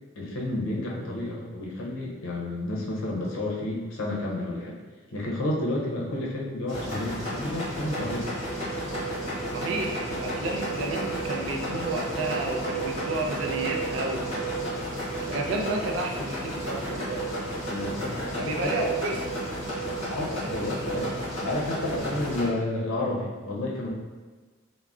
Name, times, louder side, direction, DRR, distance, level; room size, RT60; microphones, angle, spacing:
voice 1, 0.2-4.8 5.1-8.3 17.7-18.9 20.1-21.2 21.4-23.9, left 1 dB, 80° left, -3 dB, 0.5 m, -31 dB
sound 1, 6.7-22.4, left 1 dB, 30° left, 1.5 m, -33 dB
sound 2, 7.8-22.0, right 7 dB, 5° left, 1.5 m, -37 dB
voice 2, 9.5-14.3 15.2-17.2 18.4-19.2, right 3 dB, 70° right, 1 dB, 0.4 m, -31 dB
3.5 x 2.0 x 2.4 m, 1.3 s
head